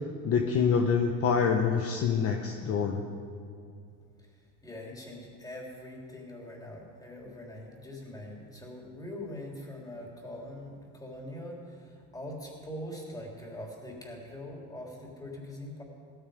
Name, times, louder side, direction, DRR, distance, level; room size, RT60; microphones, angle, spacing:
voice 1, 0.2-3.0, left 6 dB, 40° left, 3 dB, 1.1 m, -26 dB
voice 2, 4.2-15.8, left 1 dB, 10° left, -2 dB, 3.8 m, -43 dB
16.5 x 14.0 x 5.3 m, 2.4 s
supercardioid pair, 115°, 35 cm